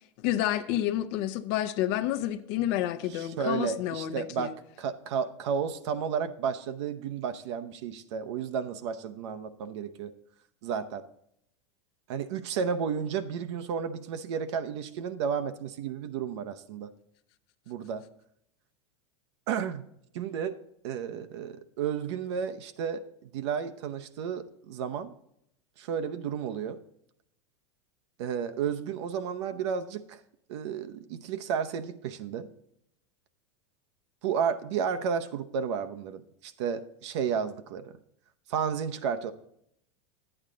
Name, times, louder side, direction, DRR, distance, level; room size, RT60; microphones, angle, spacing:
voice 1, 0.2-4.5, left 12 dB, 55° left, 9 dB, 0.7 m, -29 dB
voice 2, 3.1-4.5 4.8-10.1 10.6-11.0 12.1-16.9 17.7-18.0 19.5-19.8 20.1-20.6 20.8-25.1 25.8-26.8 28.2-30.2 30.5-32.5 34.2-37.9 38.5-39.3, right 7 dB, 70° right, 9 dB, 0.8 m, -32 dB
11.0 x 8.9 x 3.8 m, 0.75 s
hypercardioid pair, 115°, 15 cm